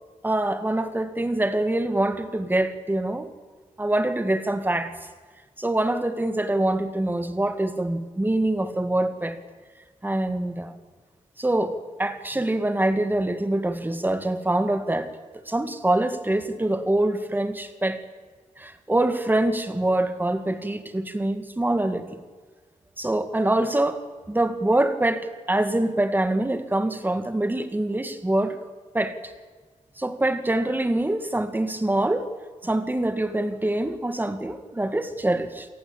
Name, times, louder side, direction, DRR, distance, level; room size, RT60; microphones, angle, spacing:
voice 1, 0.2-3.3 3.8-4.9 5.6-9.4 10.0-10.7 11.4-15.1 15.5-18.0 18.6-22.2 23.0-24.0 24.3-28.6 28.9-29.2 30.0-32.3 32.6-35.7, right 1 dB, 15° right, 9 dB, 2.0 m, -24 dB
27.5 x 18.5 x 8.8 m, 1.4 s
wide cardioid pair, 130°, 14 cm